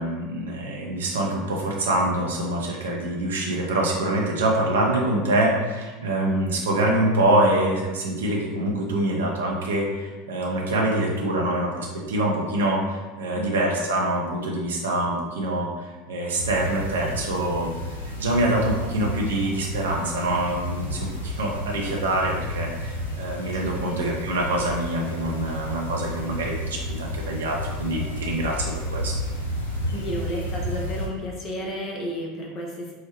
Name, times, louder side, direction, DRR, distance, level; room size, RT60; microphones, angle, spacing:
voice 1, 0.0-17.9 18.2-29.2, right 1 dB, 75° right, -1 dB, 0.6 m, -25 dB
voice 2, 13.3-13.7 23.6-24.3 29.9-32.9, equal, 45° left, -1 dB, 0.7 m, -32 dB
sound 1, 16.4-31.1, equal, 85° left, 0.7 m, -32 dB
4.7 x 2.1 x 3.0 m, 1.2 s
figure-of-eight pair, 80°, 0 cm